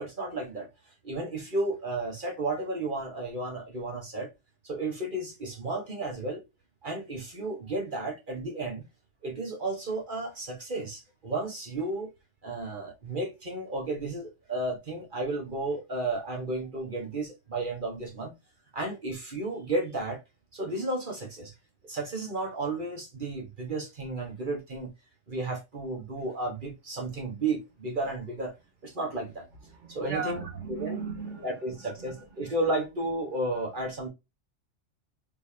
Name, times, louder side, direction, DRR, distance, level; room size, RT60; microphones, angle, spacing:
voice 1, 0.0-4.3 4.6-6.4 6.8-8.9 9.2-12.1 12.4-18.3 18.7-20.2 20.5-21.5 21.8-24.9 25.3-28.5 28.8-29.5 29.9-31.0 31.4-34.1, right 2 dB, 45° right, 1.5 m, -33 dB
voice 2, 29.6-32.5 33.5-33.6, right 5 dB, 85° right, 2.1 m, -38 dB
4.3 x 3.6 x 2.8 m
omnidirectional pair, 1.2 m